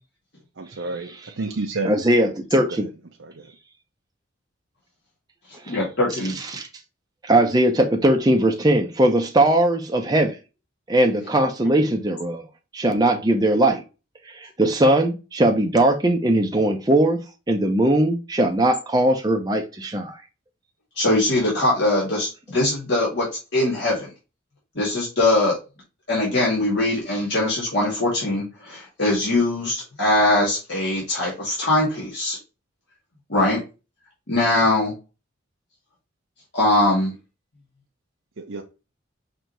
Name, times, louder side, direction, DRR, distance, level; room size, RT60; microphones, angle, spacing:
voice 1, 0.6-1.9 3.2-3.5 38.4-38.6, right 3 dB, 70° right, 0.7 m, -30 dB
voice 2, 1.8-2.9 5.7-5.8 6.5-6.7 7.2-10.3 10.9-12.5 12.7-13.8 14.3-17.2 17.5-20.2, right 1 dB, 20° right, 0.7 m, -19 dB
voice 3, 5.7-6.4 21.0-24.1 24.8-25.6 26.1-32.4 33.3-33.6 34.3-34.9 36.5-37.1, left 2 dB, 60° left, 2.0 m, -21 dB
5.3 x 3.4 x 3.0 m
head